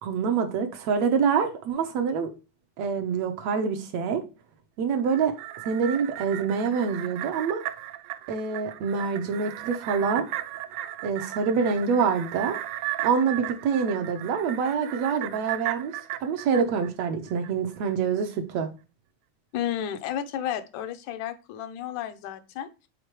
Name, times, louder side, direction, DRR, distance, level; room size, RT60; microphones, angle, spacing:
voice 1, 0.0-2.3 2.8-4.2 4.8-5.3 5.7-7.6 8.3-10.3 11.0-12.6 13.0-15.9 16.2-18.7, right 6 dB, 70° right, 1.9 m, -26 dB
sound 1, 5.0-17.5 17.9-18.0, right 14 dB, 90° right, 2.0 m, -36 dB
voice 2, 19.5-22.7, left 10 dB, 80° left, 2.1 m, -32 dB
6.5 x 4.2 x 4.5 m
omnidirectional pair, 3.5 m